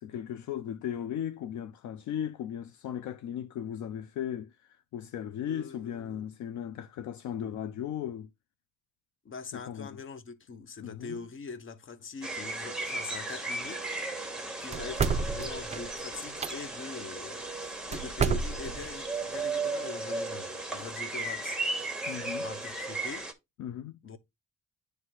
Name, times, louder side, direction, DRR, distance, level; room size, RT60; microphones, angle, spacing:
voice 1, 0.0-8.3 9.5-10.0 10.8-11.2 22.1-22.5 23.6-24.0, left 10 dB, 70° left, 0.5 m, -37 dB
voice 2, 5.5-6.3 9.2-13.9 14.6-23.3 24.0-24.2, left 5 dB, 45° left, 0.9 m, -43 dB
sound 1, 12.2-23.3, right 2 dB, ahead, 1.2 m, -35 dB
sound 2, 14.7-16.5 17.9-18.9, right 5 dB, 25° right, 0.4 m, -30 dB
9.6 x 3.3 x 3.1 m
cardioid pair, 90°, 30 cm